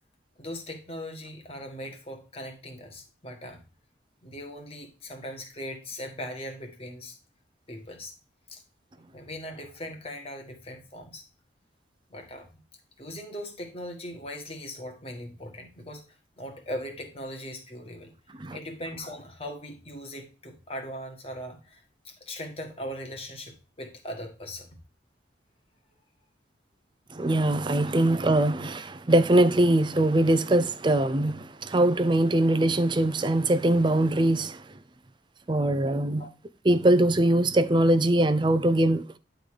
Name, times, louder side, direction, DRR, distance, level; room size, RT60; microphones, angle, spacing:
voice 1, 0.4-3.6 4.2-7.2 7.7-8.1 8.5-8.6 9.1-11.2 12.1-12.6 13.0-18.1 18.5-24.7 27.7-28.0 36.2-36.3, equal, 30° left, 1.7 m, -39 dB
voice 2, 27.1-34.6 35.5-36.2 36.6-39.1, right 1 dB, 25° right, 0.5 m, -22 dB
10.0 x 3.9 x 5.0 m
head